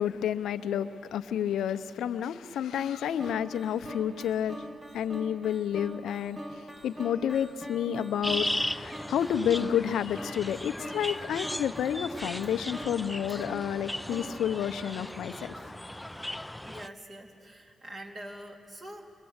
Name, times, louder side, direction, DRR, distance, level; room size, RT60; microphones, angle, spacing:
voice 1, 0.0-4.7 4.9-15.5, left 9 dB, 85° left, 11 dB, 0.6 m, -30 dB
sound 1, 3.2-15.4, equal, 25° right, 2.0 m, -44 dB
sound 2, 8.2-16.9, left 1 dB, 10° left, 0.5 m, -37 dB
voice 2, 16.7-19.1, right 1 dB, 50° right, 1 dB, 2.8 m, -44 dB
26.0 x 23.0 x 8.0 m, 2.6 s
supercardioid pair, 50°, 0 cm